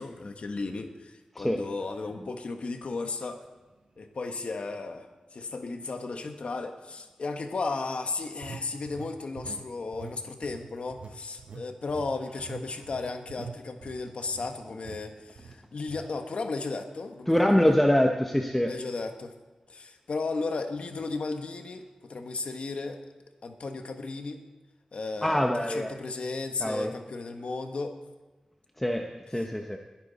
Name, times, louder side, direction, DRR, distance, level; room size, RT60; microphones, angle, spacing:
voice 1, 0.0-3.4 4.0-17.4 17.6-17.7 18.7-19.3 19.7-23.0 23.4-24.4 24.9-28.0 29.4-29.5, left 3 dB, 75° left, 5 dB, 1.5 m, -35 dB
sound 1, 4.0-4.1 4.7-4.9 8.4-9.7 9.9-10.2 10.4-14.5 14.8-15.0 15.4-15.5 15.9-16.1, right 5 dB, 85° right, 1.0 m, -44 dB
voice 2, 17.3-18.7 25.2-25.9 26.6-26.9 28.8-29.8, left 1 dB, 10° left, 3 dB, 0.9 m, -24 dB
21.5 x 11.0 x 4.2 m, 1.2 s
wide cardioid pair, 100°, 2 cm